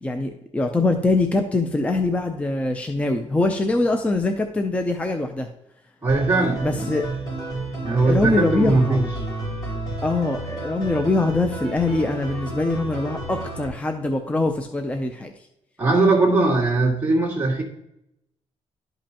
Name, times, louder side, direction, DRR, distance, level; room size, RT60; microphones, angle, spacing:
voice 1, 0.0-5.5 6.6-7.1 7.9-9.0 10.0-15.3, left 2 dB, 10° left, 5 dB, 0.5 m, -23 dB
voice 2, 6.0-6.9 7.8-9.0 15.8-17.6, right 2 dB, 15° right, -5 dB, 2.0 m, -20 dB
sound 1, 6.1-13.7, right 2 dB, 30° left, 3.1 m, -31 dB
12.0 x 5.2 x 2.9 m, 0.83 s
wide cardioid pair, 170°, 12 cm